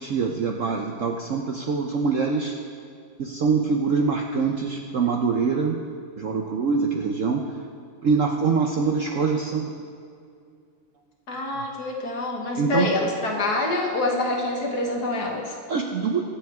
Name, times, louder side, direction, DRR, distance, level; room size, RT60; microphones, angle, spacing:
voice 1, 0.0-2.6 3.2-5.8 6.2-7.5 8.0-9.7 12.6-12.9 15.7-16.2, right 5 dB, 60° right, 2 dB, 0.8 m, -24 dB
voice 2, 11.3-15.5, left 2 dB, 55° left, 0 dB, 1.9 m, -26 dB
21.5 x 7.6 x 3.5 m, 2.3 s
omnidirectional pair, 2.1 m